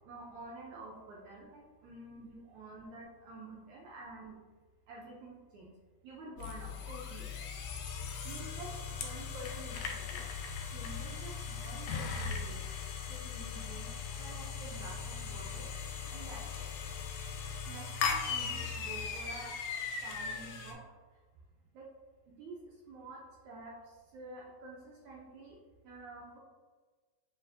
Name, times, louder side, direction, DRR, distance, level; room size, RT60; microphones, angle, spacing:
voice 1, 0.1-4.3 4.9-5.7 6.0-7.2 8.2-10.2 10.7-12.6 13.1-13.9 14.2-15.7 16.1-16.6 17.7-19.6 20.0-20.8 21.7-21.8 22.4-22.6 22.9-23.8 24.1-25.6 25.8-26.4, right 2 dB, 80° right, -3 dB, 1.6 m, -49 dB
sound 1, 6.4-20.7, left 6 dB, 80° left, 1.9 m, -39 dB
6.6 x 2.4 x 2.5 m, 1.3 s
omnidirectional pair, 3.7 m